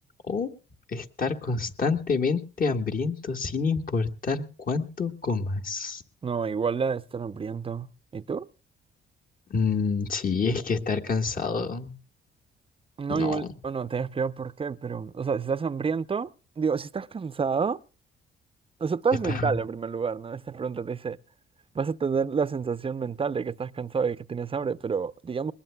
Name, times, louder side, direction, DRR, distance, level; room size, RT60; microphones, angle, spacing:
voice 1, 0.9-6.0 9.5-12.0 13.1-13.5 19.2-19.5, left 4 dB, 45° left, 1.6 m, -28 dB
voice 2, 6.2-8.5 13.0-16.3 16.6-17.8 18.8-21.2 21.7-25.5, right 5 dB, 30° right, 0.6 m, -29 dB
22.0 x 20.0 x 2.3 m
cardioid pair, 90°, 20 cm